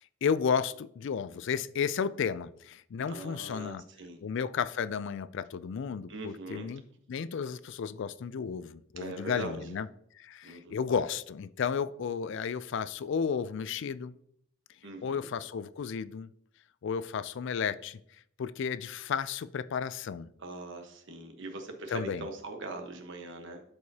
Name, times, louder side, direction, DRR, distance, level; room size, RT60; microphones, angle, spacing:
voice 1, 0.2-3.8 4.2-6.8 7.1-9.9 10.2-14.2 15.0-16.3 16.8-18.0 18.4-20.3 21.9-22.3, left 6 dB, 65° left, 16 dB, 0.4 m, -33 dB
voice 2, 3.1-4.2 6.1-6.8 9.0-9.8 10.4-10.8 14.8-15.3 20.4-23.6, right 2 dB, 65° right, 4 dB, 1.2 m, -41 dB
12.0 x 4.8 x 2.8 m, 0.69 s
head